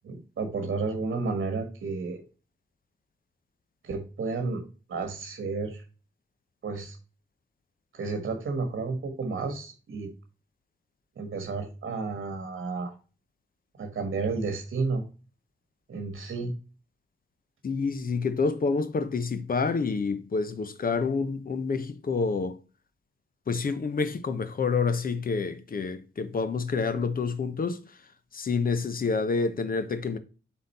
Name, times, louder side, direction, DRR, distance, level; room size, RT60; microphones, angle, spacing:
voice 1, 0.0-2.2 3.8-4.6 4.9-5.8 6.6-7.0 7.9-10.1 11.2-12.9 13.8-15.0 15.9-16.5, right 4 dB, 65° right, 1.6 m, -31 dB
voice 2, 17.6-22.6 23.5-27.8 28.3-30.2, left 4 dB, 45° left, 0.9 m, -28 dB
7.8 x 4.2 x 4.2 m
wide cardioid pair, 145°, 20 cm